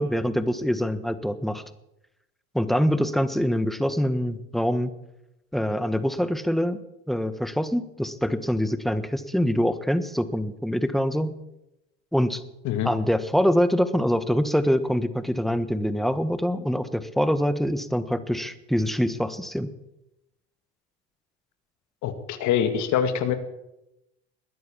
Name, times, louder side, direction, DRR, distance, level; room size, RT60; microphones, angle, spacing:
voice 1, 0.0-1.6 2.5-4.9 5.5-6.8 7.1-11.3 12.1-12.4 12.8-19.7, equal, ahead, 12 dB, 1.3 m, -24 dB
voice 2, 22.0-23.3, left 9 dB, 55° left, 10 dB, 2.1 m, -24 dB
21.0 x 9.4 x 7.2 m, 0.90 s
hypercardioid pair, 80°, 34 cm